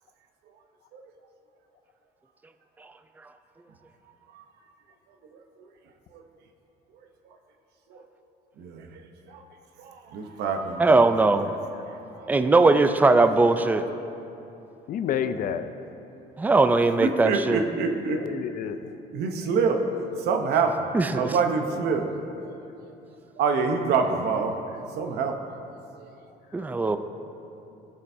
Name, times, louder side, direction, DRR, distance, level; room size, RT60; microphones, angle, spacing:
voice 1, 8.6-8.9 9.3-9.4 9.8-11.0 11.9-12.0 17.0-18.2 19.1-22.1 22.4-22.5 23.4-24.6 25.0-25.4 26.0-26.1, right 5 dB, 75° right, 5 dB, 0.9 m, -26 dB
voice 2, 10.8-11.5 12.3-13.8 16.4-17.6 20.9-21.4 26.5-27.0, right 3 dB, 10° right, 9 dB, 0.4 m, -20 dB
voice 3, 14.9-15.7 18.1-18.9 26.6-26.8, left 8 dB, 55° left, 10 dB, 0.5 m, -30 dB
16.0 x 6.7 x 2.7 m, 2.8 s
cardioid pair, 110°, 17 cm